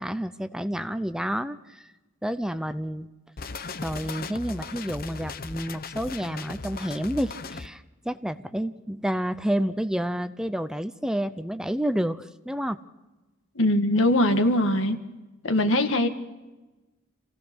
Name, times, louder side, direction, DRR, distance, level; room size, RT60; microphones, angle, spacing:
voice 1, 0.0-1.9 2.2-3.1 3.8-12.8, equal, 5° right, 11 dB, 0.6 m, -29 dB
sound 1, 3.4-7.7, left 4 dB, 50° left, 0.9 m, -37 dB
voice 2, 13.6-15.0 15.4-16.1, left 1 dB, 80° left, 7 dB, 1.8 m, -21 dB
27.0 x 17.0 x 6.2 m, 1.1 s
head